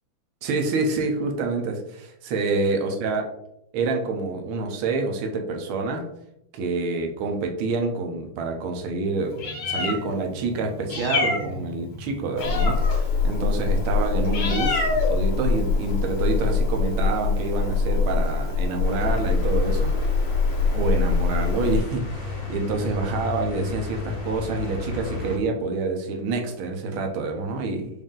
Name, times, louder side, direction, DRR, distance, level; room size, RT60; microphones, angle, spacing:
voice 1, 0.4-3.2 3.7-6.1 6.5-9.4 9.6-19.9 20.7-27.9, right 3 dB, 85° right, 3 dB, 1.6 m, -27 dB
Meow, 9.2-21.8, left 4 dB, 85° left, 2.0 m, -24 dB
sound 1, 18.8-25.4, left 3 dB, 65° left, 1.8 m, -33 dB
5.1 x 2.7 x 3.7 m, 0.77 s
omnidirectional pair, 2.3 m